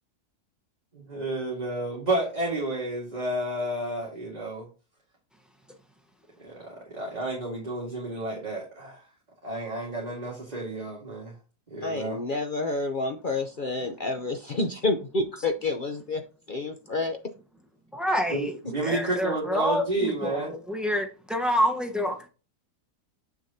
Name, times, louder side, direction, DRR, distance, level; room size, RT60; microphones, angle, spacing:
voice 1, 0.9-4.7 6.4-9.0 9.4-11.3 11.7-12.2 18.3-20.5, right 2 dB, 25° right, 2.0 m, -31 dB
voice 2, 11.8-16.2 16.5-17.2, left 2 dB, 50° left, 0.6 m, -29 dB
voice 3, 17.9-18.5 18.8-22.3, equal, ahead, 0.8 m, -27 dB
7.5 x 6.3 x 2.8 m
omnidirectional pair, 1.7 m